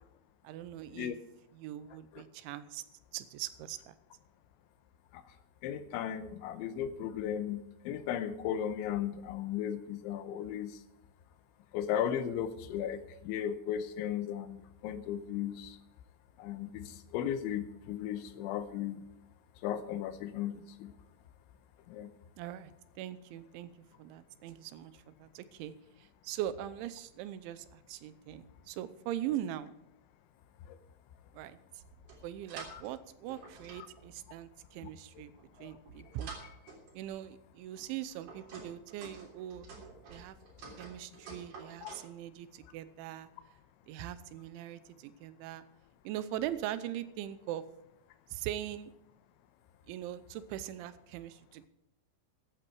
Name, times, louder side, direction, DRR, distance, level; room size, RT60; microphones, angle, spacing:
voice 1, 0.4-1.2 1.5-2.8 3.1-4.0 22.4-22.7 23.0-23.7 24.0-29.8 31.3-31.6 32.2-35.3 35.6-36.3 36.9-39.7 40.1-40.4 40.8-43.3 43.9-45.6 46.0-47.6 48.3-48.9 49.9-51.7, right 12 dB, 85° right, 14 dB, 3.1 m, -41 dB
voice 2, 5.6-10.7 11.7-15.8 16.4-19.0 19.6-20.9 21.9-22.1 30.7-30.8 32.7-32.8 35.6-35.7 41.8-42.0, left 9 dB, 85° left, 11 dB, 3.2 m, -36 dB
sound 1, 31.8-33.0 33.3-34.6 35.3-37.1 37.7-42.1, right 4 dB, 45° right, 4.5 m, -50 dB
14.5 x 11.0 x 4.7 m, 0.85 s
omnidirectional pair, 5.4 m